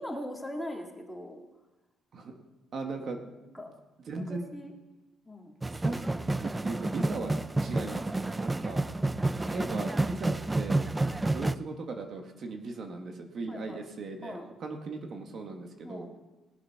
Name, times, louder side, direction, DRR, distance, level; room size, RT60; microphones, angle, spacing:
voice 1, 0.0-1.4 3.5-3.7 4.2-4.7 5.2-5.5 11.0-11.3 13.5-13.9 14.2-14.5 15.8-16.1, left 1 dB, 5° left, 0 dB, 2.4 m, -41 dB
voice 2, 2.7-3.3 4.1-4.5 5.7-6.0 6.2-7.3 7.6-8.8 9.4-10.8 11.3-16.1, right 3 dB, 55° right, 4 dB, 1.4 m, -38 dB
sound 1, 5.6-11.6, right 2 dB, 15° right, 0.4 m, -30 dB
19.0 x 6.9 x 5.7 m, 1.1 s
cardioid pair, 90°, 0 cm